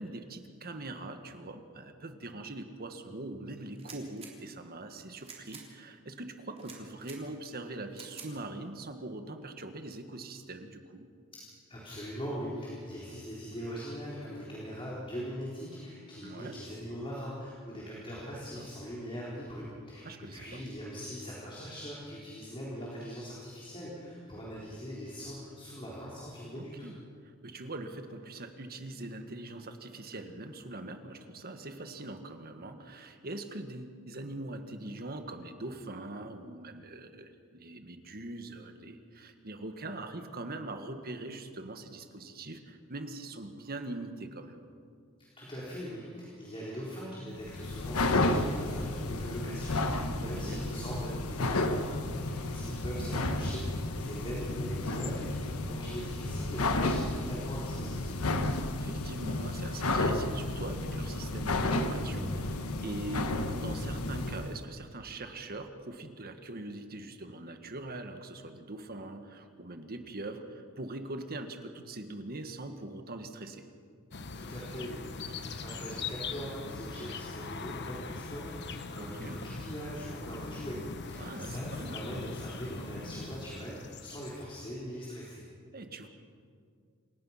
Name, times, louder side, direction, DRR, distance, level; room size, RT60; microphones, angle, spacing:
voice 1, 0.0-11.0 16.2-16.5 18.3-18.7 20.0-20.7 26.5-27.0 27.2-44.6 50.2-50.6 52.9-53.1 58.8-73.6 79.0-79.4 81.2-82.1 85.7-86.1, right 2 dB, 45° right, 7 dB, 1.6 m, -42 dB
sound 1, 3.7-4.3 5.1-5.6 6.6-7.2 7.9-8.3, right 6 dB, 30° right, 3.7 m, -48 dB
voice 2, 11.7-26.9 45.4-58.3 74.4-85.4, equal, 25° left, -5 dB, 4.0 m, -41 dB
sound 2, 47.4-64.6, left 2 dB, 90° left, 1.3 m, -32 dB
sound 3, 74.1-84.4, left 4 dB, 55° left, 1.1 m, -41 dB
28.0 x 17.5 x 5.8 m, 2.2 s
head